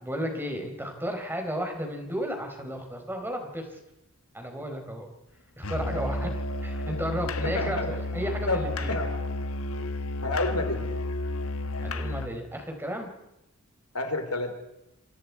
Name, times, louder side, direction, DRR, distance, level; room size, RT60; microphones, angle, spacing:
voice 1, 0.0-3.8 4.3-5.1 5.6-8.9 11.8-13.1, equal, 10° right, 4 dB, 4.3 m, -33 dB
Musical instrument, 5.6-12.4, left 2 dB, 70° left, 1.6 m, -32 dB
voice 2, 7.4-7.9 8.5-9.1 10.2-10.9 13.9-14.5, left 2 dB, 85° left, 6 dB, 3.7 m, -29 dB
27.5 x 26.5 x 4.8 m, 0.89 s
head